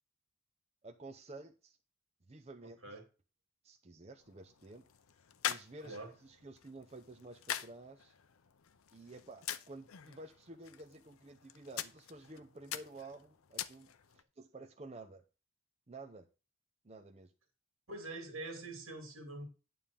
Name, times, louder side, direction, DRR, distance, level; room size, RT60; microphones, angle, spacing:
voice 1, 0.8-1.8 2.3-2.8 3.6-4.8 5.4-8.1 8.9-13.9 14.1-15.2 15.9-16.3 16.8-17.3, right 2 dB, 30° right, 4 dB, 0.6 m, -51 dB
voice 2, 2.6-3.0 5.8-6.1 17.9-19.4, right 2 dB, 80° right, 4 dB, 2.4 m, -45 dB
sound 1, 4.2-14.2, left 10 dB, 85° left, 0.6 m, -45 dB
9.3 x 3.6 x 6.9 m, 0.33 s
head